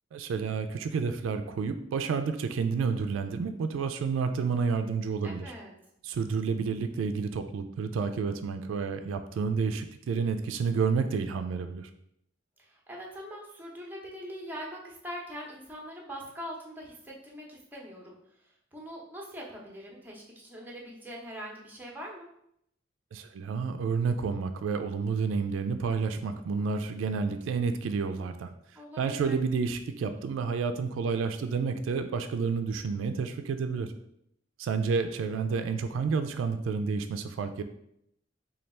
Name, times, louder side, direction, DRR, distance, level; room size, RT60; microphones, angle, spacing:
voice 1, 0.1-5.5 6.0-11.9 23.1-28.5 29.0-33.9 34.6-37.6, right 5 dB, 80° right, 9 dB, 0.3 m, -30 dB
voice 2, 5.2-5.7 12.7-18.2 18.7-22.3 28.8-29.4, equal, 10° right, -2 dB, 0.7 m, -42 dB
3.2 x 2.3 x 4.1 m, 0.74 s
head